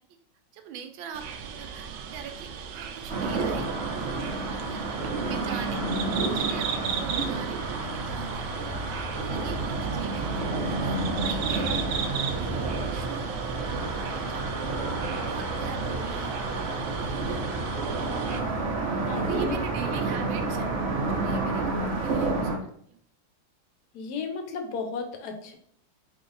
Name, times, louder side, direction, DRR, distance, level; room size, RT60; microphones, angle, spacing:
voice 1, 0.5-3.7 4.5-4.8 5.1-5.8 6.1-12.1 12.6-13.3 14.0-14.4 15.1-16.4 16.6-17.4 19.2-20.7 21.1-22.5 22.9-23.0, right 8 dB, 90° right, 6 dB, 1.4 m, -42 dB
sound 1, 1.1-18.4, right 7 dB, 75° right, 1.1 m, -37 dB
sound 2, 3.1-22.6, right 3 dB, 60° right, 0.7 m, -29 dB
voice 2, 19.1-19.6 23.9-25.6, left 5 dB, 65° left, 5 dB, 1.2 m, -34 dB
3.6 x 3.2 x 3.8 m, 0.63 s
omnidirectional pair, 2.1 m